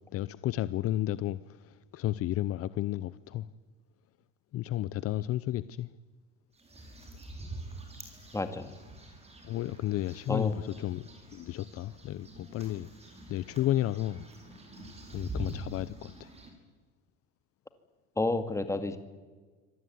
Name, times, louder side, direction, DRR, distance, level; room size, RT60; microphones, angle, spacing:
voice 1, 0.1-3.5 4.5-5.9 9.4-11.0 11.3-12.9 13.3-14.3 15.1-16.3, left 14 dB, 50° left, 0.7 m, -32 dB
sound 1, 6.5-16.5, right 1 dB, 20° right, 6.1 m, -45 dB
voice 2, 8.3-8.8 10.3-10.6 18.2-19.0, left 2 dB, 10° left, 2.2 m, -30 dB
25.5 x 17.5 x 9.5 m
cardioid pair, 125°, 31 cm